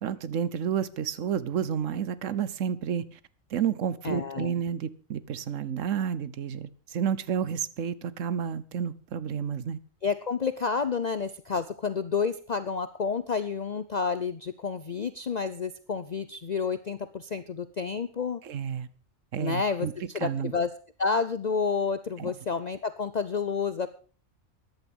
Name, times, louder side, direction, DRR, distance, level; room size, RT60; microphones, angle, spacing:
voice 1, 0.0-3.0 3.5-9.8 18.4-18.9 19.3-19.9 20.2-20.5 22.2-22.3, right 8 dB, 75° right, 1.2 m, -30 dB
voice 2, 4.0-4.6 10.0-18.4 19.4-20.7 21.0-23.9, left 5 dB, 45° left, 0.7 m, -30 dB
14.5 x 10.5 x 5.4 m
omnidirectional pair, 1.3 m